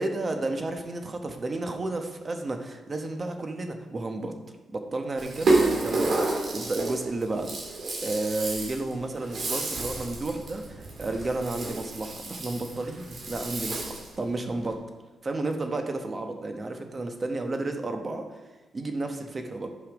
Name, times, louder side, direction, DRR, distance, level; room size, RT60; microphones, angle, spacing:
voice 1, 0.0-4.3 4.7-7.6 8.0-14.8 15.2-18.4 18.7-19.7, right 2 dB, 30° right, 5 dB, 1.1 m, -32 dB
Rattle (instrument), 5.2-14.2, right 2 dB, 55° right, 2.3 m, -30 dB
12.0 x 5.6 x 5.2 m, 1.2 s
cardioid pair, 105°, 0 cm